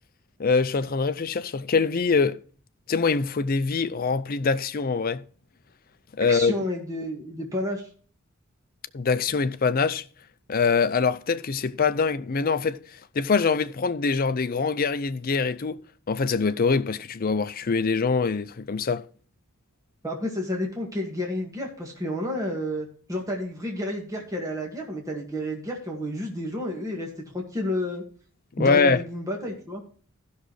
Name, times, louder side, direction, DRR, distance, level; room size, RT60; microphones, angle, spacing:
voice 1, 0.4-2.4 2.9-5.2 6.2-6.5 8.9-10.0 10.5-12.8 13.1-15.8 16.1-19.0 28.6-29.0, left 4 dB, 45° left, 0.5 m, -24 dB
voice 2, 6.3-7.9 20.0-28.0 28.6-29.8, left 1 dB, 15° right, 1.9 m, -30 dB
15.5 x 6.2 x 3.2 m
head